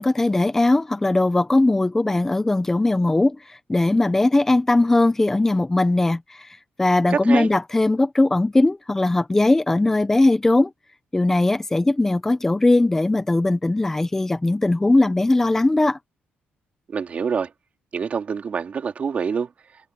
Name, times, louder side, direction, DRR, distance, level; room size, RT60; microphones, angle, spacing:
voice 1, 0.0-6.5 6.8-10.7 11.1-16.0, left 2 dB, 10° left, 0.8 m, -19 dB
voice 2, 7.1-7.5 16.9-17.5 17.9-19.5, right 6 dB, 35° right, 2.9 m, -26 dB
cardioid pair, 150°, 4 cm